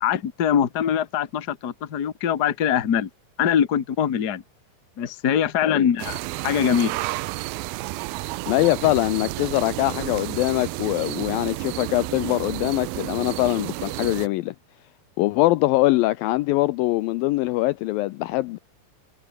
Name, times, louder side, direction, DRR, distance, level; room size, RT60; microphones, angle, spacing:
voice 1, 0.0-3.1 3.4-4.4 5.0-7.0, left 8 dB, 55° left, 1.0 m, -23 dB
sound 1, 6.0-14.3, right 20 dB, 80° right, 2.3 m, -31 dB
voice 2, 8.5-14.6 15.2-18.6, left 18 dB, 80° left, 2.2 m, -23 dB
omnidirectional pair, 4.5 m